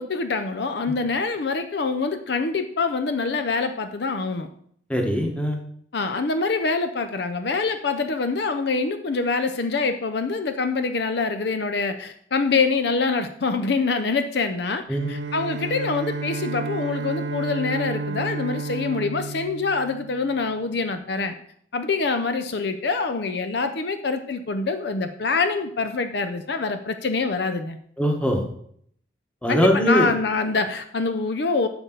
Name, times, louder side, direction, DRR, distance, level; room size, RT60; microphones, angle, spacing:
voice 1, 0.0-4.5 5.9-21.3 21.7-27.8 29.5-31.7, left 4 dB, 60° left, 8 dB, 0.6 m, -25 dB
voice 2, 4.9-5.6 14.9-15.1 28.0-28.5 29.4-30.1, equal, 5° left, 2 dB, 1.1 m, -21 dB
Bowed string instrument, 14.9-20.5, right 3 dB, 60° right, 0.5 m, -31 dB
10.5 x 6.7 x 3.9 m, 0.65 s
head